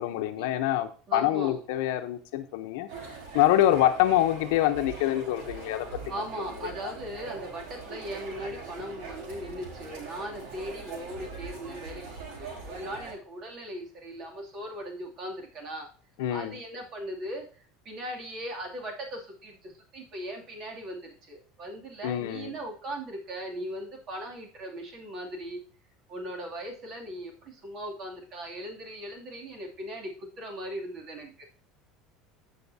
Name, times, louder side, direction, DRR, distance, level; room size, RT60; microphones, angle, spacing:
voice 1, 0.0-2.9 3.3-6.0 16.2-16.6 22.0-22.5, left 13 dB, 80° left, 9 dB, 0.9 m, -25 dB
voice 2, 1.1-1.6 6.1-15.9 16.3-25.6 26.1-31.4, right 1 dB, 45° right, 0 dB, 2.7 m, -39 dB
sound 1, 2.9-13.1, right 4 dB, 80° right, 3.9 m, -42 dB
15.5 x 5.6 x 2.8 m, 0.39 s
supercardioid pair, 130°, 0 cm